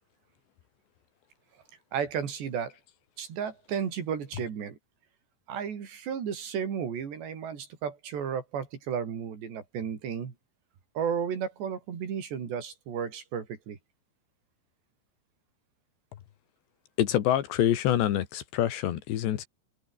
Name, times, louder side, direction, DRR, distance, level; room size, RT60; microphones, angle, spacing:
voice 1, 1.9-2.8 3.2-4.8 5.5-10.3 11.0-13.8, right 7 dB, 65° right, 5.8 m, -33 dB
voice 2, 17.0-19.5, left 11 dB, 70° left, 3.8 m, -26 dB
omnidirectional pair, 5.3 m